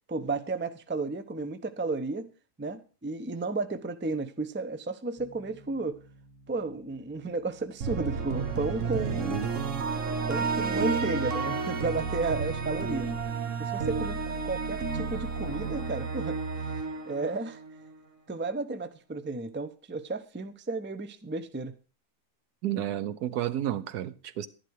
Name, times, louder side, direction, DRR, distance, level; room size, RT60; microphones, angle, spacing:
voice 1, 0.1-2.3 2.6-6.0 6.5-9.4 10.0-13.2 13.6-16.4 17.1-17.6 18.3-21.7, right 3 dB, 15° right, 0.4 m, -33 dB
Piano, 5.2-14.8, equal, 25° left, 7.6 m, -60 dB
sound 1, 7.8-18.0, right 4 dB, 55° right, 1.6 m, -31 dB
voice 2, 22.6-24.5, right 12 dB, 80° right, 1.3 m, -31 dB
12.0 x 11.0 x 4.7 m
omnidirectional pair, 1.6 m